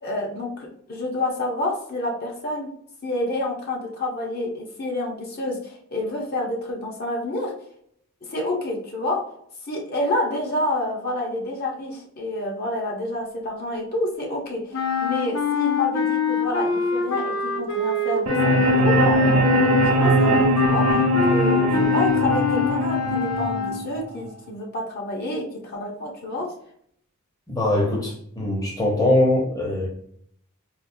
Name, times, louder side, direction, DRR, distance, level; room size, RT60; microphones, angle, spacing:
voice 1, 0.0-2.7 3.0-7.5 8.2-9.2 9.7-21.0 21.3-26.5, left 2 dB, 45° left, -1 dB, 0.8 m, -28 dB
sound 1, 14.7-23.9, left 3 dB, 75° left, 0.6 m, -25 dB
sound 2, 18.3-24.3, equal, 80° right, 0.8 m, -20 dB
voice 2, 27.5-29.9, left 1 dB, 15° left, -3 dB, 0.7 m, -22 dB
4.1 x 2.4 x 2.6 m, 0.66 s
head